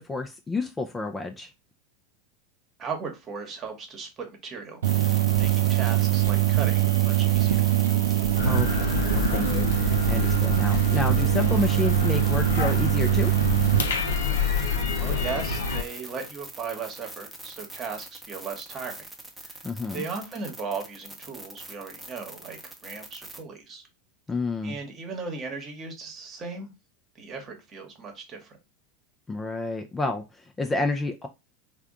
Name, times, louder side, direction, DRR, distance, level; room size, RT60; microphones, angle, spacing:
voice 1, 0.0-1.5 8.4-13.3 19.6-20.0 24.3-24.8 29.3-31.3, left 3 dB, 15° left, 0.5 m, -30 dB
voice 2, 2.8-7.7 15.0-19.1 19.4-19.6 19.9-23.8 24.6-26.7 27.2-28.6, right 5 dB, 30° right, 1.1 m, -37 dB
sound 1, 4.8-23.4, right 1 dB, 5° right, 0.8 m, -41 dB
sound 2, 4.8-13.8, right 14 dB, 70° right, 0.4 m, -23 dB
sound 3, 8.4-15.8, left 4 dB, 70° left, 0.6 m, -28 dB
3.5 x 2.3 x 3.6 m
figure-of-eight pair, 85°, 0 cm